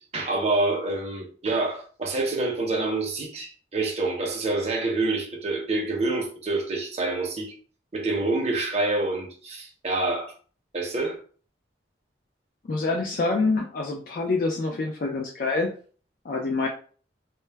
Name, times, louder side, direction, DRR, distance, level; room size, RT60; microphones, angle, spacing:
voice 1, 0.1-7.5 7.9-10.3 10.7-11.2, right 2 dB, 35° right, 0.6 m, -27 dB
voice 2, 12.7-15.7 16.2-16.7, left 3 dB, 50° left, 0.3 m, -26 dB
2.1 x 2.0 x 3.2 m
head